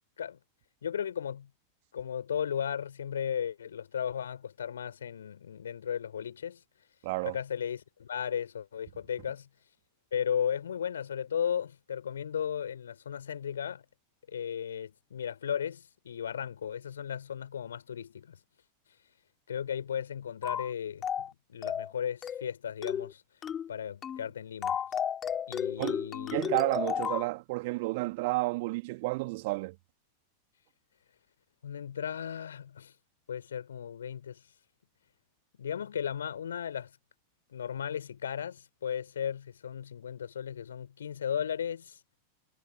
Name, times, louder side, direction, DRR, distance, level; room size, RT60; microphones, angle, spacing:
voice 1, 0.8-1.5 1.9-6.6 7.2-9.5 10.1-13.8 14.3-18.4 19.5-23.2 23.7-24.8 25.5-26.4 31.6-32.9 33.3-34.4 35.6-36.9 37.5-42.0, left 8 dB, 65° left, 5.4 m, -35 dB
voice 2, 7.0-7.4 25.8-26.0 26.3-29.8, right 23 dB, 50° right, 2.4 m, -31 dB
sound 1, 20.4-20.7 21.0-21.3 21.6-21.9 22.2-22.5 22.8-23.1 23.4-23.7 24.0-24.3 24.6-27.3, left 8 dB, 25° left, 2.3 m, -33 dB
figure-of-eight pair, 90°, 0 cm